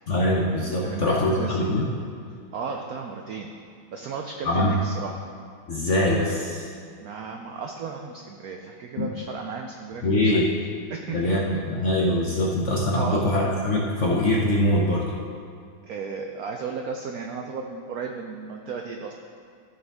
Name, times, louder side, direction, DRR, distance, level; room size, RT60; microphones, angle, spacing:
voice 1, 0.1-1.9 4.4-4.7 5.7-6.7 9.0-9.1 10.0-10.5 11.1-15.1, left 1 dB, 55° left, -3 dB, 0.8 m, -23 dB
voice 2, 0.8-1.7 2.5-3.5 3.9-5.2 7.0-10.5 10.9-11.6 12.9-13.3 15.8-19.1, right 5 dB, 85° right, 3 dB, 0.8 m, -34 dB
14.0 x 6.4 x 3.5 m, 2.2 s
omnidirectional pair, 2.2 m